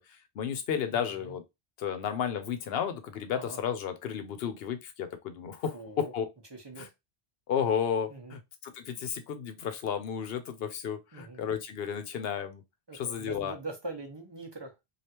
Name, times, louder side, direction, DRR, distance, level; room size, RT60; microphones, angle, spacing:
voice 1, 0.1-1.4 1.8-6.2 6.8-6.9 7.5-12.6 13.0-13.5, left 8 dB, 70° left, 0.8 m, -33 dB
voice 2, 0.9-1.4 3.3-3.6 5.7-6.1 6.5-6.9 8.1-8.4 11.1-11.4 12.9-14.8, right 2 dB, 30° right, 0.7 m, -42 dB
3.2 x 2.4 x 2.8 m
omnidirectional pair, 1.1 m